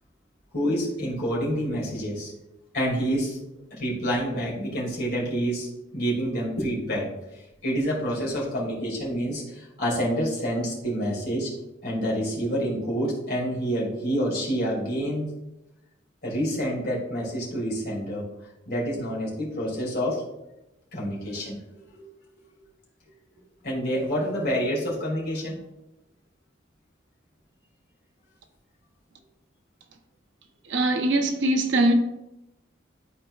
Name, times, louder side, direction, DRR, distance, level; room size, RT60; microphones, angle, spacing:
voice 1, 0.5-2.3 2.7-3.4 3.7-7.1 7.6-11.5 11.8-15.3 16.2-18.2 18.7-20.2 20.9-21.6 21.9-22.1 23.6-25.6, equal, 55° left, 2.4 m, -28 dB
voice 2, 30.7-31.9, right 1 dB, 75° right, 0.8 m, -22 dB
11.5 x 4.2 x 2.4 m
head